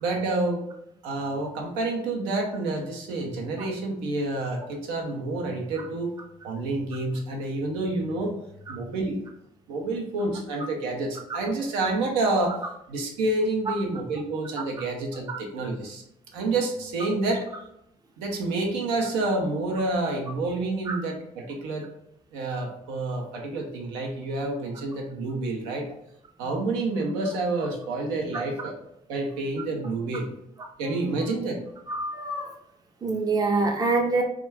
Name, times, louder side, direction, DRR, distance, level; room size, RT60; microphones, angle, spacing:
voice 1, 0.0-0.7 1.0-6.1 6.4-8.4 8.7-9.2 9.7-16.0 16.3-17.5 18.2-21.9 22.3-25.9 26.4-28.8 29.1-30.3 30.8-31.6, right 2 dB, 65° right, 1 dB, 0.5 m, -28 dB
voice 2, 31.9-32.5 33.0-34.2, right 3 dB, 20° right, 1 dB, 0.5 m, -25 dB
2.3 x 2.2 x 3.3 m, 0.76 s
figure-of-eight pair, 40°, 20 cm